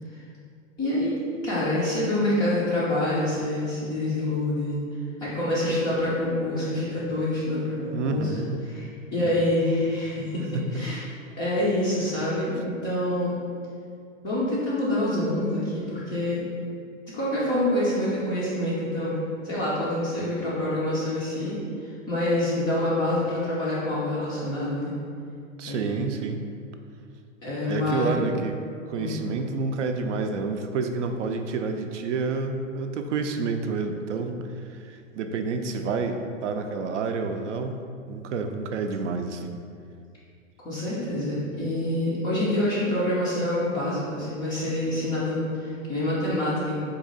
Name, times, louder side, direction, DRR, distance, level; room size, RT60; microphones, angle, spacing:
voice 1, 0.8-4.8 5.2-8.3 8.7-10.4 10.7-11.0 11.4-13.4 14.2-16.4 17.1-19.2 19.4-24.9 25.7-26.1 27.4-28.2 29.0-29.2 40.6-46.8, left 1 dB, 10° left, -9 dB, 0.3 m, -26 dB
voice 2, 7.9-8.7 9.2-9.4 10.5-10.6 25.6-26.4 27.7-28.6 28.9-34.4 34.7-37.8 38.1-39.5, right 4 dB, 65° right, 6 dB, 0.5 m, -29 dB
4.0 x 2.7 x 3.8 m, 2.3 s
hypercardioid pair, 110°, 40 cm